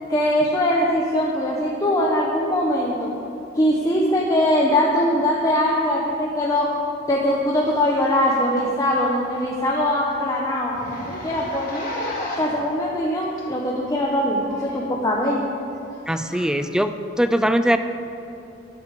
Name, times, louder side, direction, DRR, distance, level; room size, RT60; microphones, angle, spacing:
voice 1, 0.1-3.1 3.5-6.7 7.1-11.9 12.4-15.5 15.9-16.0 16.3-16.5, left 1 dB, 20° left, -4 dB, 1.2 m, -22 dB
Zipper (clothing), 8.1-8.2 8.6-8.7 9.0-9.1 9.5-9.6 9.8-10.0 10.7-12.6 13.4-13.5 14.5-14.6, left 1 dB, 45° left, 3.1 m, -32 dB
voice 2, 16.1-17.8, equal, 5° right, 9 dB, 0.5 m, -21 dB
12.0 x 11.0 x 6.7 m, 2.8 s
head